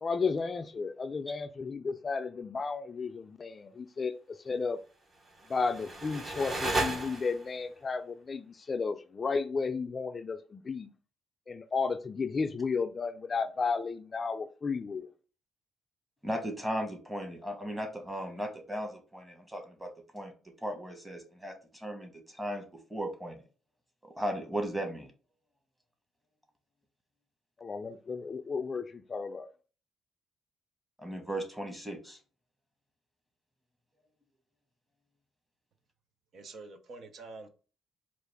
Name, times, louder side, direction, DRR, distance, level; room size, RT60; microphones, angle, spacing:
voice 1, 0.0-4.8 5.5-10.9 11.5-15.1 27.6-29.5, left 4 dB, 35° left, 0.4 m, -33 dB
sound 1, 5.2-7.6, right 2 dB, 40° right, 1.1 m, -34 dB
voice 2, 16.2-20.3 20.6-22.6 22.9-23.4 24.0-25.1 31.0-32.2, equal, 10° right, 1.2 m, -36 dB
voice 3, 36.3-37.5, right 3 dB, 60° right, 0.6 m, -46 dB
4.5 x 2.5 x 3.4 m
cardioid pair, 90°, 0 cm